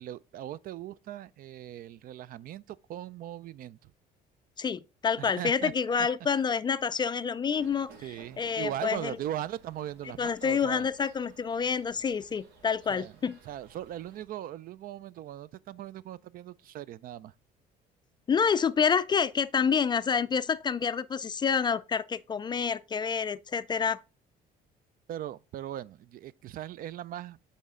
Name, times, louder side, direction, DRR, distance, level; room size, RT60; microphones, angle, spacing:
voice 1, 0.0-3.9 5.2-5.7 8.0-10.9 12.9-13.1 13.4-17.3 25.1-27.4, right 12 dB, 60° right, 0.4 m, -39 dB
voice 2, 4.6-7.9 8.4-9.2 10.2-13.4 18.3-24.0, left 6 dB, 25° left, 0.3 m, -28 dB
sound 1, 7.5-14.2, right 5 dB, 80° right, 2.0 m, -56 dB
8.6 x 4.2 x 3.7 m
cardioid pair, 110°, 17 cm